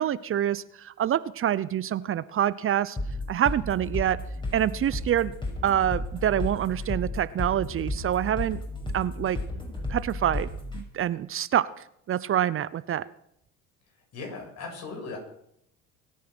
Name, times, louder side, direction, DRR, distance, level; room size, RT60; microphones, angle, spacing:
voice 1, 0.0-3.0 3.3-4.2 4.5-5.3 5.6-8.6 8.9-9.4 9.9-11.7 12.1-13.1, right 11 dB, 45° right, 17 dB, 0.7 m, -26 dB
sound 1, 3.0-10.8, left 1 dB, 15° left, 5.7 m, -33 dB
voice 2, 14.1-15.2, left 3 dB, 55° left, 1 dB, 7.7 m, -37 dB
23.5 x 9.3 x 6.2 m, 0.73 s
supercardioid pair, 90°, 31 cm